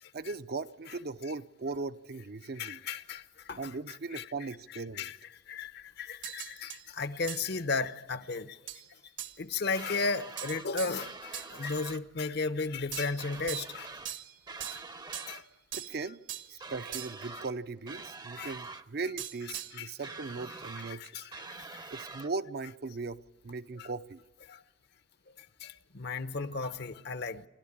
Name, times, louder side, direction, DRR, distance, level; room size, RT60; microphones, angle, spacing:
voice 1, 0.1-2.8 3.6-5.1 15.7-16.2 16.5-21.2 21.9-24.2, right 3 dB, 55° right, 0.6 m, -38 dB
voice 2, 2.6-4.2 5.0-5.2 5.5-8.6 9.4-13.9 14.7-14.8 15.3-15.4 18.4-18.5 19.7-19.9 20.9-21.9 23.8-23.9 24.5-24.6 25.4-27.5, left 4 dB, 60° left, 0.9 m, -35 dB
sound 1, 6.2-6.8 7.3-7.5 8.7-8.9 9.2-9.4 10.4-11.5 12.9-13.8 14.1-15.4 15.7-16.5 16.9-17.3 19.2-19.9, right 11 dB, 75° right, 1.6 m, -41 dB
sound 2, 9.7-10.7 11.0-12.0 13.2-14.1 14.5-15.4 16.6-17.5 17.9-18.8 20.0-21.0 21.3-22.3, right 4 dB, 25° right, 0.7 m, -45 dB
28.0 x 12.5 x 8.7 m
head